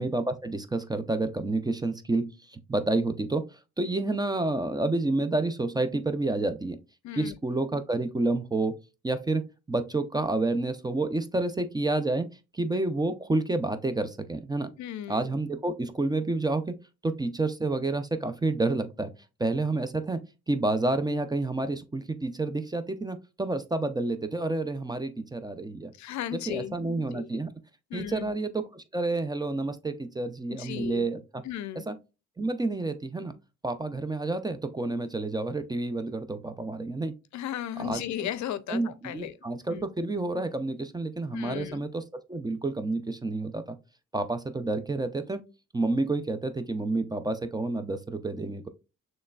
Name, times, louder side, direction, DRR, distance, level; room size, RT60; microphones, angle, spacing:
voice 1, 0.0-3.4 3.8-6.8 7.1-8.7 9.0-12.3 12.5-14.7 15.1-16.8 17.0-19.1 19.4-20.2 20.5-25.9 26.3-27.5 27.9-31.4 31.9-32.0 32.4-33.3 33.6-37.1 37.8-38.0 38.7-43.8 44.1-45.4 45.7-48.7, right 2 dB, 15° right, 0.4 m, -29 dB
voice 2, 7.0-7.3 14.8-15.3 26.0-27.4 27.9-28.4 30.5-31.1 31.4-31.8 37.3-39.3 39.7-39.8 41.3-41.8, left 11 dB, 70° left, 0.5 m, -36 dB
6.4 x 3.2 x 2.3 m
cardioid pair, 90°, 30 cm